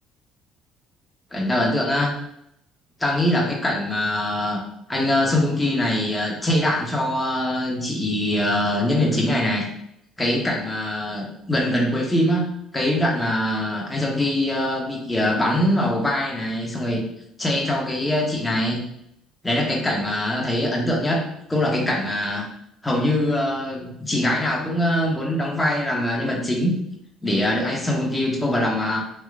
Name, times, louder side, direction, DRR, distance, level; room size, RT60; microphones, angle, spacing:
voice 1, 1.3-2.1 3.0-4.6 4.9-9.7 10.2-12.5 12.7-17.0 17.4-18.8 19.4-21.2 21.5-22.5 22.8-26.7 27.2-29.0, left 1 dB, 15° left, -2 dB, 0.9 m, -23 dB
3.2 x 2.8 x 2.4 m, 0.74 s
supercardioid pair, 90°, 0 cm